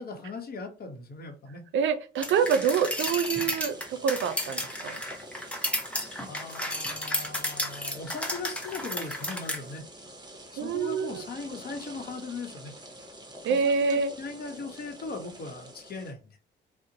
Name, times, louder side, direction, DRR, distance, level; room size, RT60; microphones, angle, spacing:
voice 1, 0.0-1.6 6.0-9.8 10.5-12.7 13.5-16.4, left 3 dB, 50° left, 6 dB, 0.9 m, -39 dB
voice 2, 1.7-5.0 10.6-11.3 13.4-14.1, right 6 dB, 75° right, 10 dB, 0.5 m, -26 dB
sound 1, 2.2-9.6, left 1 dB, 5° left, 0.7 m, -33 dB
sound 2, 2.2-16.1, right 1 dB, 20° right, 0.9 m, -47 dB
2.7 x 2.1 x 3.9 m, 0.35 s
cardioid pair, 90°, 20 cm